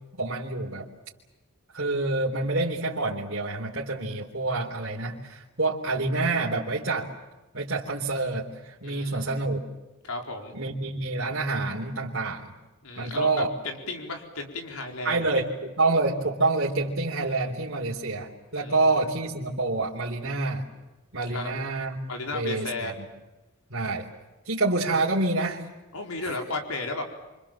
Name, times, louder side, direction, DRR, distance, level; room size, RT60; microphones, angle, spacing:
voice 1, 0.2-0.9 1.7-7.1 7.5-9.6 10.5-12.5 13.0-13.5 15.0-20.6 21.1-22.0 22.3-22.9 23.7-24.1 24.5-25.7, right 3 dB, 60° right, -4 dB, 3.7 m, -27 dB
voice 2, 8.8-9.4 10.0-10.5 12.8-15.4 18.6-19.1 21.3-21.5 22.1-23.0 25.9-27.0, left 3 dB, 85° left, 2 dB, 4.5 m, -34 dB
28.0 x 26.5 x 7.5 m, 1.1 s
head